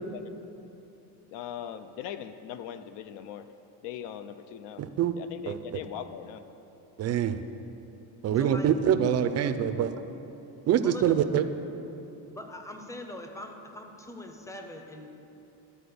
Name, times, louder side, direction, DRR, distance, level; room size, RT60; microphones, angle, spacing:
voice 1, 1.3-3.5 3.8-4.8 5.2-6.4, left 9 dB, 75° left, 10 dB, 0.5 m, -40 dB
voice 2, 4.8-5.1 5.5-5.6 7.0-7.4 8.2-9.9 10.7-11.5, right 9 dB, 40° right, 10 dB, 0.4 m, -25 dB
voice 3, 8.3-8.7 9.6-9.9 10.8-11.2 12.3-15.2, left 1 dB, 5° left, 4 dB, 0.6 m, -42 dB
12.0 x 4.2 x 6.8 m, 2.9 s
cardioid pair, 145°, 43 cm